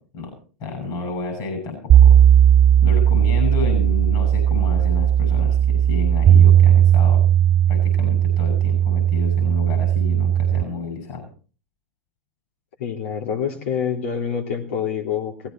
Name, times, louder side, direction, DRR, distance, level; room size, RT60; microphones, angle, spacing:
voice 1, 0.6-2.2 2.8-7.2 7.7-11.3, left 3 dB, 55° left, 6 dB, 6.5 m, -30 dB
sound 1, 1.9-10.6, right 10 dB, 35° right, 2.1 m, -16 dB
voice 2, 12.8-15.5, left 7 dB, 75° left, 0 dB, 3.2 m, -26 dB
18.0 x 15.5 x 4.5 m, 0.39 s
hypercardioid pair, 90°, 7 cm